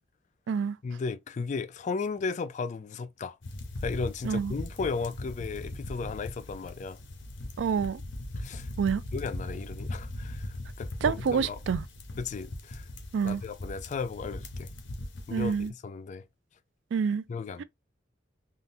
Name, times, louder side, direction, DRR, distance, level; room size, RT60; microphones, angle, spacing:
voice 1, 0.8-3.4 3.8-7.0 8.4-8.7 9.1-11.6 12.2-12.9 13.2-14.7 15.3-16.2 17.3-17.6, left 4 dB, 40° left, 0.3 m, -35 dB
sound 1, 3.4-15.7, left 1 dB, 90° left, 0.8 m, -39 dB
voice 2, 7.6-8.0 8.8-9.0 11.0-11.8 13.1-13.4 15.3-15.7 16.9-17.2 17.6-17.7, right 6 dB, 85° right, 0.3 m, -27 dB
3.7 x 2.1 x 2.7 m
head